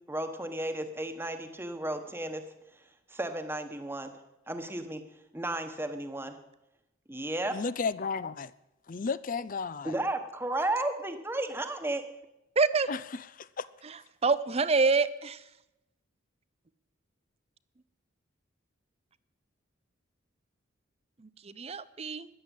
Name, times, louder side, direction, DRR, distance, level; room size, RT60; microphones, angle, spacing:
voice 1, 0.0-2.4 3.1-4.1 4.5-5.0 5.3-6.4 7.1-7.5 9.8-12.0, right 1 dB, 10° right, 1.2 m, -33 dB
voice 2, 7.5-8.5 8.9-9.9 12.9-13.0 13.4-13.7, left 5 dB, 40° left, 0.5 m, -33 dB
voice 3, 12.6-12.9 13.8-15.5 21.2-22.3, right 4 dB, 30° right, 0.6 m, -27 dB
14.5 x 10.5 x 8.2 m
head